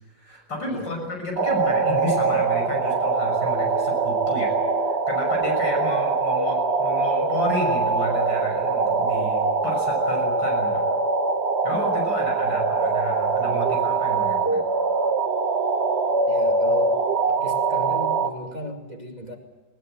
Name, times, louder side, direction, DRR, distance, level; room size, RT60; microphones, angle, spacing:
voice 1, 0.2-4.6 4.8-10.9 11.6-14.6, left 1 dB, 75° left, 1 dB, 7.2 m, -32 dB
voice 2, 0.7-1.1 12.4-12.6 16.3-17.0 17.3-19.4, right 1 dB, 25° right, 1 dB, 2.6 m, -36 dB
sound 1, 1.4-18.3, right 4 dB, 40° right, 1.5 m, -23 dB
20.5 x 19.5 x 9.2 m, 1.1 s
omnidirectional pair, 1.9 m